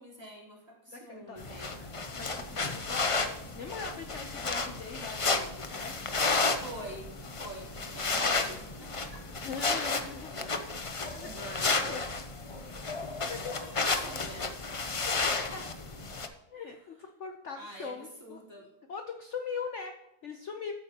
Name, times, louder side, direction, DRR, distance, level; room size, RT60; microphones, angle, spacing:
voice 1, 0.0-1.7 6.6-7.1 7.4-9.4 10.3-10.6 11.0-11.9 13.6-14.5 16.6-16.7 17.5-18.7, right 1 dB, 15° right, -5 dB, 3.8 m, -46 dB
voice 2, 0.9-1.4 1.8-1.9 2.2-7.0 9.4-10.5 11.1-12.0 12.5-13.7 15.5-15.7 16.5-18.4 18.9-20.7, left 5 dB, 55° left, 5 dB, 1.0 m, -42 dB
sound 1, 1.4-16.3, left 3 dB, 35° left, 0.5 m, -32 dB
14.0 x 9.2 x 2.9 m, 0.93 s
omnidirectional pair, 1.7 m